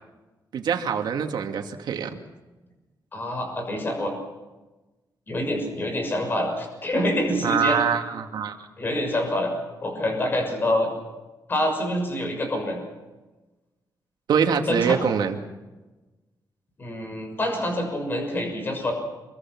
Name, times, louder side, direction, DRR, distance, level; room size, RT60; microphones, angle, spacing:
voice 1, 0.5-2.2 7.4-8.6 14.3-15.4, right 7 dB, 85° right, 4 dB, 2.5 m, -24 dB
voice 2, 3.1-4.1 5.3-7.8 8.8-9.5 9.8-10.9 11.5-12.8 14.7-15.0 16.8-18.9, left 1 dB, 30° left, 4 dB, 6.6 m, -26 dB
27.5 x 23.0 x 6.2 m, 1.1 s
wide cardioid pair, 175°, 7 cm